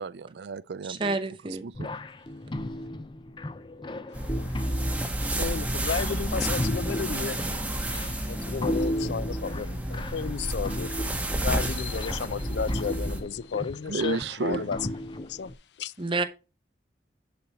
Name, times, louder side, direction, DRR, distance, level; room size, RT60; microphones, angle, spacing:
voice 1, 0.0-1.2 1.4-2.0 13.9-14.7, right 4 dB, 75° right, 0.4 m, -33 dB
voice 2, 0.9-1.6 16.0-16.2, right 3 dB, 30° right, 0.8 m, -28 dB
sound 1, 1.7-15.5, left 1 dB, 25° left, 0.5 m, -36 dB
sound 2, 4.1-13.2, right 1 dB, 10° right, 1.2 m, -30 dB
voice 3, 5.4-7.5 8.3-10.9 11.4-14.8 15.3-15.9, left 6 dB, 80° left, 0.4 m, -32 dB
10.5 x 4.3 x 5.4 m
head